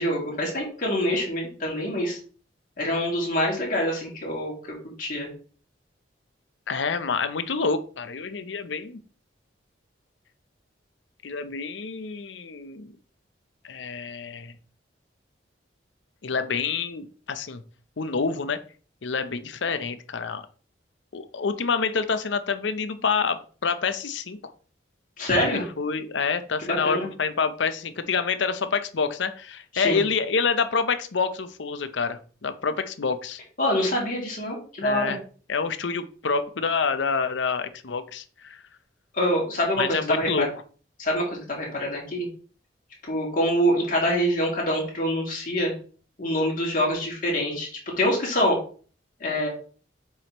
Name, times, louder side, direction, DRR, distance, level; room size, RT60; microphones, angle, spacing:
voice 1, 0.0-2.2 2.8-4.7 5.0-5.3 25.2-25.6 26.6-27.1 29.7-30.0 33.6-35.2 39.1-40.5 41.0-42.3 43.1-45.7 46.2-47.7 48.0-48.6 49.2-49.5, equal, 45° left, -2 dB, 2.5 m, -25 dB
voice 2, 6.7-9.0 11.2-12.9 13.6-14.5 16.2-17.6 18.0-18.6 19.0-20.4 21.1-24.4 25.4-33.4 34.8-35.2 35.5-38.6 39.8-40.5, left 5 dB, 75° left, 11 dB, 0.6 m, -27 dB
7.4 x 4.9 x 3.0 m, 0.40 s
head